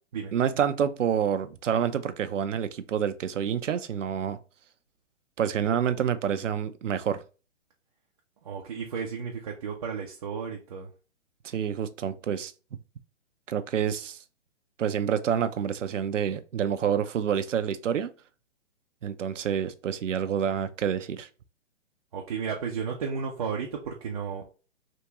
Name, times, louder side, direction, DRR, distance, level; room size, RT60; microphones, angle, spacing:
voice 1, 0.3-4.4 5.4-7.2 11.4-12.5 13.5-14.2 14.8-18.1 19.0-21.3, right 8 dB, 85° right, 0.5 m, -28 dB
voice 2, 8.4-10.9 22.1-24.4, right 6 dB, 30° right, 0.5 m, -33 dB
3.5 x 2.9 x 2.9 m
hypercardioid pair, 135°, 37 cm